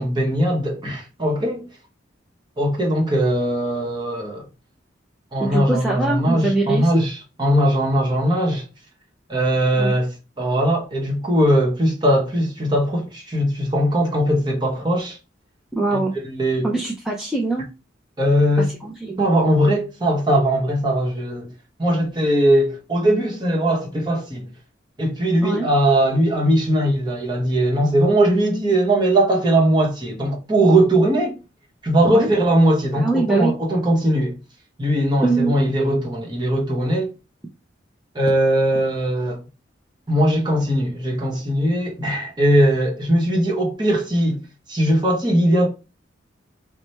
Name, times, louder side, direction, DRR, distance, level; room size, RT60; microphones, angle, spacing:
voice 1, 0.0-1.6 2.6-4.5 5.3-7.1 7.4-8.6 9.3-10.1 10.4-15.2 15.9-16.7 18.2-18.7 19.2-21.5 21.8-24.5 25.0-31.4 31.8-34.4 34.8-37.1 38.1-39.4 40.1-44.4 44.7-45.7, right 1 dB, 25° right, 1.0 m, -19 dB
voice 2, 5.4-7.0 9.8-10.0 15.7-16.1 16.6-17.7 18.8-19.2 25.4-25.7 32.0-32.3 32.9-33.5 35.2-35.5, right 2 dB, 5° right, 0.4 m, -23 dB
4.1 x 2.2 x 3.2 m
head